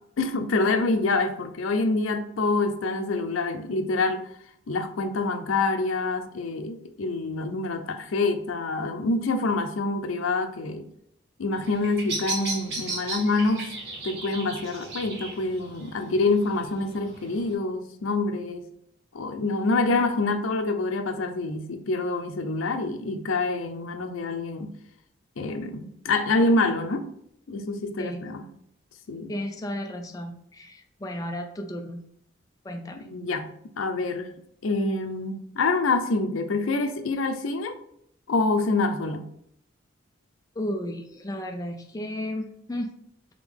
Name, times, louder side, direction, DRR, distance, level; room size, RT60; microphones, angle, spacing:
voice 1, 0.2-4.2 4.7-10.9 11.4-13.7 14.0-18.6 19.1-24.7 25.4-27.1 27.5-28.5 29.1-29.3 32.9-33.5 33.8-34.3 34.6-37.8 38.3-39.2, left 3 dB, 85° left, 7 dB, 0.5 m, -26 dB
Bird vocalization bird call bird song, 11.5-17.5, right 3 dB, 55° right, 1.1 m, -36 dB
voice 2, 29.3-32.0 32.6-33.0 40.6-43.0, left 1 dB, 15° left, 4 dB, 0.3 m, -33 dB
3.7 x 3.4 x 3.4 m, 0.72 s
head